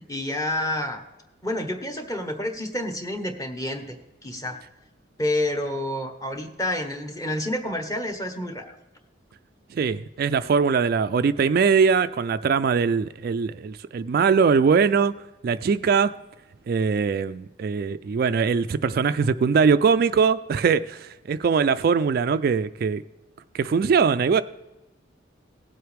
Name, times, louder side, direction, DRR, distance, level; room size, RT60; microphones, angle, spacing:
voice 1, 0.1-1.0 1.4-4.0 4.2-4.6 5.2-8.8, left 1 dB, 20° left, 1.1 m, -29 dB
voice 2, 9.7-15.1 15.4-16.1 16.7-23.0 23.5-24.4, right 5 dB, 50° right, 0.3 m, -21 dB
17.5 x 7.8 x 3.4 m
head